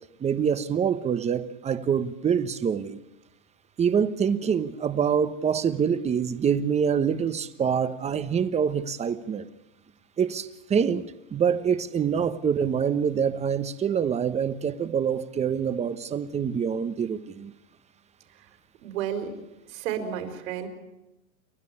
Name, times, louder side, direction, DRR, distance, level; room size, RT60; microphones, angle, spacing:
voice 1, 0.2-3.0 3.8-9.5 10.2-11.0 11.3-17.5, right 7 dB, 15° right, 1.0 m, -25 dB
voice 2, 18.8-19.3 19.7-20.7, right 9 dB, 65° right, 4.7 m, -31 dB
29.5 x 12.5 x 9.9 m
supercardioid pair, 135°, 42 cm